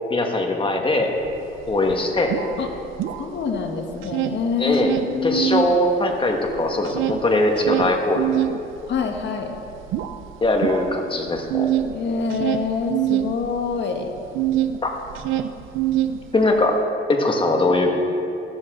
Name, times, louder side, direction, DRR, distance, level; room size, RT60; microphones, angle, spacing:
voice 1, 0.1-1.1 1.7-2.3 4.6-4.9 5.2-8.2 10.4-11.7 14.8-14.9 16.3-16.8 17.1-17.9, left 2 dB, 25° left, 2 dB, 1.8 m, -20 dB
sound 1, 1.3-1.4 1.6-3.6 3.9-5.8 6.1-14.8 15.1-16.6, right 12 dB, 90° right, 0.6 m, -25 dB
voice 2, 3.2-5.6 8.9-9.6 11.9-14.1, left 5 dB, 65° left, 3 dB, 1.6 m, -26 dB
14.0 x 12.5 x 3.9 m, 2.7 s
cardioid pair, 90°, 20 cm